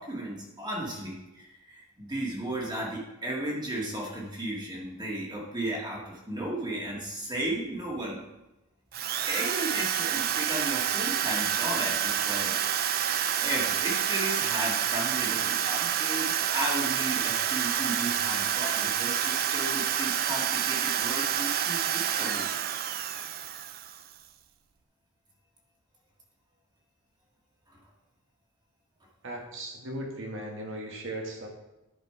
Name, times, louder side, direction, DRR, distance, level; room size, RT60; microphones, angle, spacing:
voice 1, 0.0-8.2 9.3-12.5 13.0-22.5 27.7-27.8, right 1 dB, 20° right, -3 dB, 2.0 m, -35 dB
Drill, 8.9-24.1, right 9 dB, 45° right, 0.5 m, -28 dB
voice 2, 29.2-31.5, right 1 dB, 65° right, 1 dB, 1.8 m, -37 dB
11.0 x 5.0 x 4.8 m, 0.98 s
head